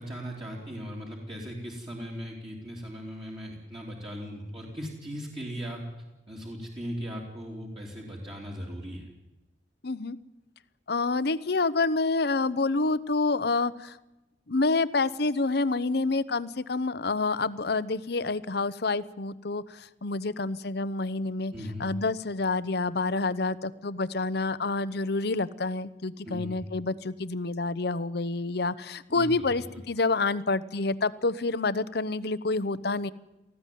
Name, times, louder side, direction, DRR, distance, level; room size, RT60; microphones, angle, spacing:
voice 1, 0.0-5.8 6.3-9.1 21.5-21.8 26.2-26.6 29.1-29.5, equal, 30° right, -3 dB, 3.2 m, -38 dB
voice 2, 9.8-10.2 10.9-14.0 14.5-21.5 21.8-33.1, left 3 dB, 65° left, 15 dB, 0.9 m, -28 dB
19.0 x 15.0 x 9.3 m, 0.99 s
head